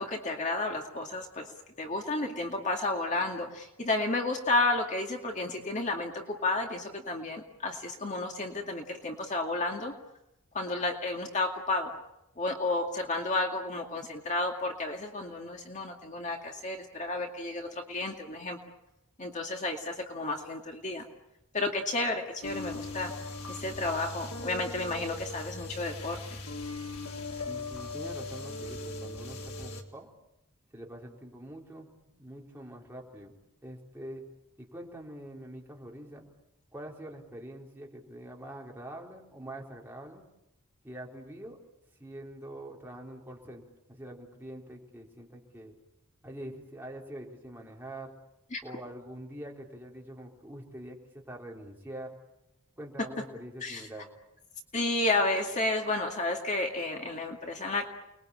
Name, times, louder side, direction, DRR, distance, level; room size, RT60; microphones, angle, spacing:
voice 1, 0.0-1.5 1.8-9.9 10.5-11.9 12.4-18.6 19.2-21.1 21.5-23.1 23.5-26.4 48.5-48.6 53.6-53.9 54.7-57.8, left 2 dB, 35° left, 2 dB, 2.3 m, -32 dB
sound 1, 22.4-29.8, left 2 dB, 80° left, 3.7 m, -39 dB
voice 2, 27.5-30.1 30.7-34.2 34.6-36.3 36.7-40.2 40.8-41.6 42.0-43.6 43.9-45.7 46.2-48.1 48.6-52.2 52.8-54.1, right 1 dB, 10° right, -2 dB, 4.5 m, -44 dB
29.5 x 21.5 x 8.8 m, 0.89 s
head